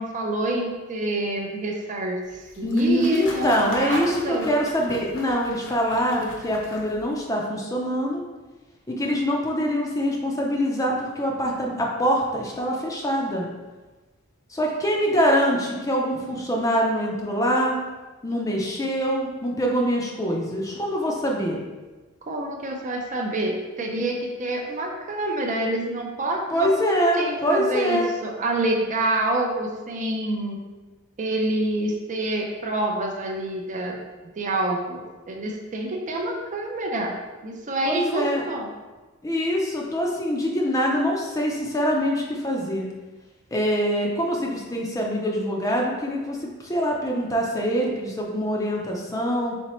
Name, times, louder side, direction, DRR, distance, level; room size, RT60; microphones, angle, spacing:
voice 1, 0.0-4.5 15.0-15.1 22.2-30.6 31.2-34.0 34.4-37.1 37.4-38.7, right 1 dB, 35° right, 1 dB, 0.5 m, -27 dB
sound 1, 2.2-7.2, left 2 dB, 60° left, 0.7 m, -41 dB
voice 2, 2.6-8.2 8.9-13.5 14.5-17.8 18.2-21.6 26.5-28.1 37.9-38.4 39.2-42.8 43.5-49.5, equal, 15° left, -1 dB, 0.5 m, -24 dB
4.3 x 3.9 x 3.0 m, 1.2 s
head